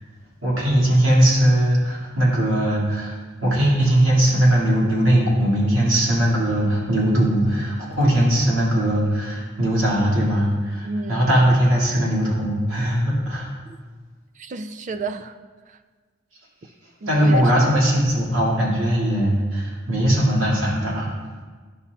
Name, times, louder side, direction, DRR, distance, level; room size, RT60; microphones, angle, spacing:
voice 1, 0.4-13.5 17.1-21.1, right 1 dB, 90° right, -5 dB, 2.2 m, -19 dB
voice 2, 10.8-11.3 13.7-13.8 14.4-15.4 15.7-15.8 17.0-17.7, right 3 dB, 40° right, 9 dB, 0.4 m, -31 dB
11.0 x 5.7 x 2.4 m, 1.5 s
head